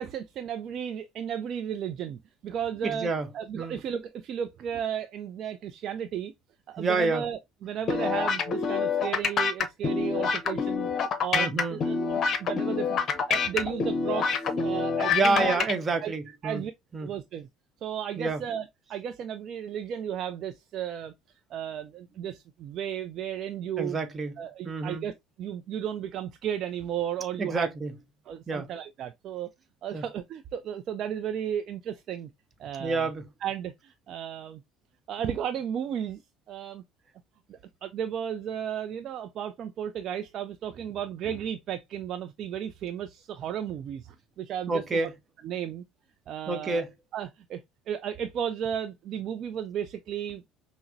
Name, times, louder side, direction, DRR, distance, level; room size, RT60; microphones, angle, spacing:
voice 1, 0.0-3.1 3.3-6.3 6.7-10.9 11.2-15.7 16.0-16.1 16.4-16.7 17.0-17.5 17.8-21.1 21.5-24.0 24.4-27.7 28.3-29.5 29.8-32.3 32.6-33.1 33.4-34.6 35.1-36.2 36.5-36.8 37.5-44.8 45.4-45.8 46.3-46.8 47.1-47.6 47.9-50.4, right 9 dB, 50° right, 0.3 m, -34 dB
voice 2, 2.8-3.3 3.5-3.8 6.8-7.3 11.3-11.8 15.1-16.6 16.9-17.1 18.2-18.4 23.8-24.4 24.6-25.1 27.4-27.9 28.5-28.7 29.9-30.0 32.8-33.2 44.7-45.1 46.5-46.9, right 3 dB, 30° right, 1.0 m, -28 dB
sound 1, 7.9-15.7, left 5 dB, 45° left, 0.7 m, -27 dB
5.6 x 2.0 x 2.6 m
figure-of-eight pair, 60°, 0 cm